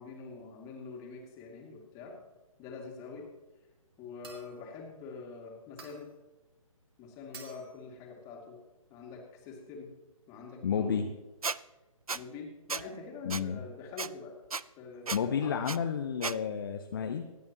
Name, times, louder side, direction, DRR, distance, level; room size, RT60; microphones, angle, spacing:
voice 1, 0.0-2.2 2.6-3.3 4.0-6.1 7.0-8.6 8.9-9.9 10.3-11.1 12.1-14.3 14.8-15.6, left 4 dB, 20° left, 0 dB, 2.4 m, -45 dB
sound 1, 4.2-4.7 5.8-6.2 7.3-7.8, right 5 dB, 45° right, 2.5 m, -50 dB
voice 2, 10.6-11.0 13.2-13.6 15.1-17.2, left 7 dB, 40° left, 5 dB, 0.8 m, -31 dB
Squeak, 11.4-11.6 12.1-12.2 12.7-12.8 13.3-13.4 14.0-14.1 14.5-14.6 15.1-15.2 15.7-15.8 16.2-16.4, right 4 dB, 90° right, 0.5 m, -34 dB
26.0 x 9.4 x 3.0 m, 1.1 s
figure-of-eight pair, 140°, 18 cm